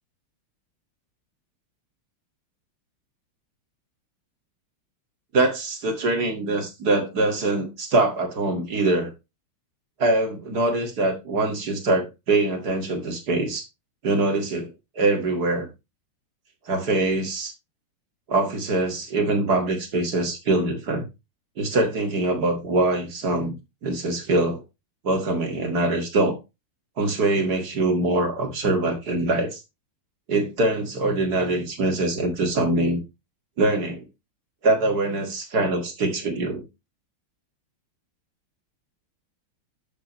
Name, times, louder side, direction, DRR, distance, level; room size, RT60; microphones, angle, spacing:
voice 1, 5.3-9.1 10.0-13.7 14.0-14.7 15.0-15.7 16.7-17.5 18.3-21.1 21.6-23.6 23.8-24.6 25.0-26.4 27.0-29.6 30.3-33.0 33.6-34.0 34.6-36.6, right 2 dB, 45° right, 2.4 m, -23 dB
11.5 x 7.1 x 3.1 m
omnidirectional pair, 2.4 m